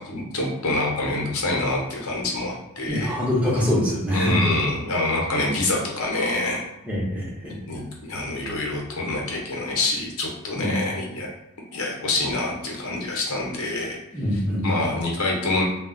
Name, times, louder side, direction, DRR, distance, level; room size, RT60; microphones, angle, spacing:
voice 1, 0.1-3.2 4.1-6.6 7.7-11.3 11.7-14.0 14.6-15.6, left 2 dB, 75° left, -1 dB, 0.7 m, -26 dB
voice 2, 2.9-4.4 6.8-7.6 10.6-10.8 14.1-15.0, left 1 dB, 5° right, -6 dB, 0.7 m, -24 dB
2.3 x 2.1 x 3.7 m, 0.88 s
head